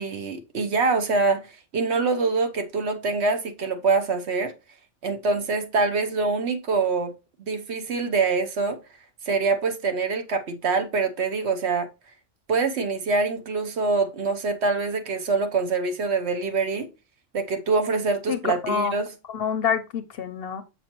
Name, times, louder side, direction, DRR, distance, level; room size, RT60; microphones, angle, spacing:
voice 1, 0.0-1.4 1.7-4.5 5.0-7.1 7.4-8.8 9.2-11.9 12.5-16.9 17.3-19.1, right 4 dB, 65° right, 1.1 m, -24 dB
voice 2, 18.3-18.9 19.3-20.6, left 7 dB, 60° left, 0.7 m, -27 dB
6.9 x 6.0 x 2.9 m
omnidirectional pair, 1.3 m